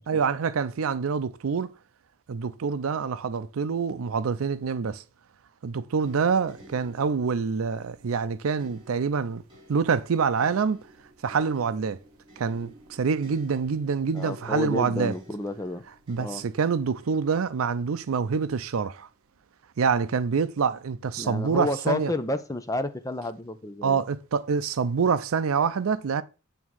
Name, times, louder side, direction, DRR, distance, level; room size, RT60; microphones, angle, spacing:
voice 1, 0.1-1.7 2.3-5.0 5.6-9.4 9.7-10.8 11.2-12.0 12.4-15.1 16.1-19.1 19.8-22.1 23.8-26.2, right 5 dB, 85° right, 0.5 m, -26 dB
sound 1, 6.0-19.1 19.9-20.1, equal, 25° right, 4.9 m, -53 dB
voice 2, 14.1-15.8 16.2-16.4 21.2-24.0, left 1 dB, 15° left, 0.7 m, -31 dB
9.1 x 3.6 x 6.2 m
head